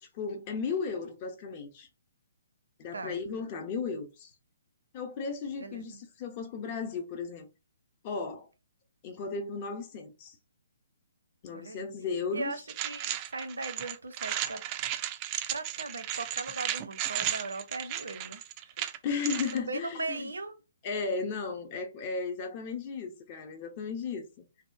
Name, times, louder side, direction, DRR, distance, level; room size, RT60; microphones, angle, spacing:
voice 1, 0.0-1.9 2.8-4.3 4.9-7.5 8.0-8.5 9.0-10.4 11.4-12.5 19.0-20.3 20.8-24.4, left 5 dB, 35° left, 0.7 m, -35 dB
voice 2, 5.6-6.0 11.5-11.9 12.3-14.6 15.5-18.4 18.7-18.9 19.5-20.6, right 3 dB, 80° right, 0.6 m, -38 dB
sound 1, 12.7-19.6, right 12 dB, 30° right, 0.3 m, -35 dB
2.8 x 2.1 x 2.5 m
figure-of-eight pair, 135°, 0 cm